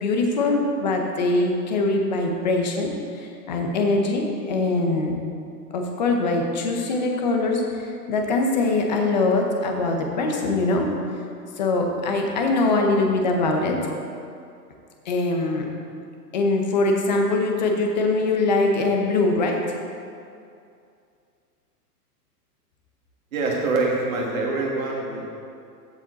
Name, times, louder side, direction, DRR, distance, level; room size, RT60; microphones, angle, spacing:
voice 1, 0.0-5.1 5.7-10.9 11.6-13.8 15.1-15.6 16.3-19.6, left 2 dB, 30° left, 2 dB, 0.7 m, -22 dB
voice 2, 23.3-25.3, right 3 dB, 55° right, -2 dB, 2.2 m, -25 dB
14.5 x 5.1 x 4.0 m, 2.5 s
hypercardioid pair, 175°, 48 cm